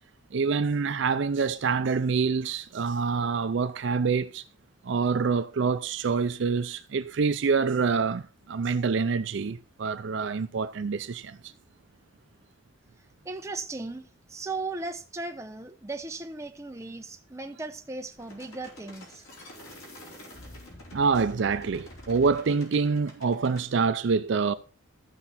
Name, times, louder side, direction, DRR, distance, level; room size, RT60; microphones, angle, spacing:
voice 1, 0.3-4.4 4.8-11.5 20.9-24.5, right 5 dB, 60° right, 0.4 m, -26 dB
voice 2, 13.2-19.2, right 3 dB, 15° right, 0.7 m, -37 dB
sound 1, 18.2-23.7, left 1 dB, 90° left, 4.2 m, -47 dB
14.0 x 5.9 x 4.2 m
head